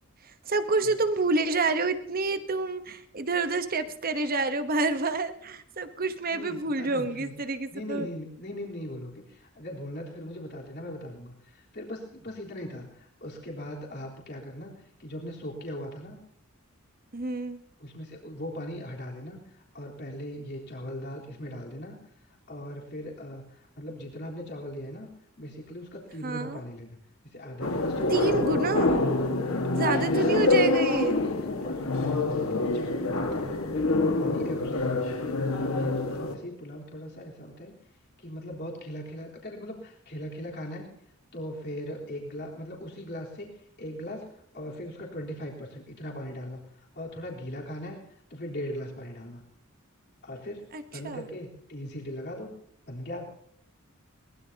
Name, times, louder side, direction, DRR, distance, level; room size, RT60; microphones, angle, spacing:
voice 1, 0.4-8.1 17.1-17.6 26.2-26.6 28.1-29.0 29.8-31.2 50.7-51.2, right 3 dB, 45° right, 10 dB, 1.1 m, -28 dB
voice 2, 6.3-7.4 7.7-14.7 15.0-16.2 17.8-22.0 22.5-25.1 25.4-27.0 27.3-28.7 29.4-29.8 30.9-33.8 34.2-37.7 38.2-40.9 41.3-46.7 46.9-48.0 48.3-49.4 50.2-50.7 50.9-52.5 52.9-53.3, equal, 55° left, -3 dB, 3.8 m, -39 dB
sound 1, 27.6-36.4, left 2 dB, 80° left, 1.8 m, -26 dB
22.0 x 19.5 x 2.9 m, 0.67 s
head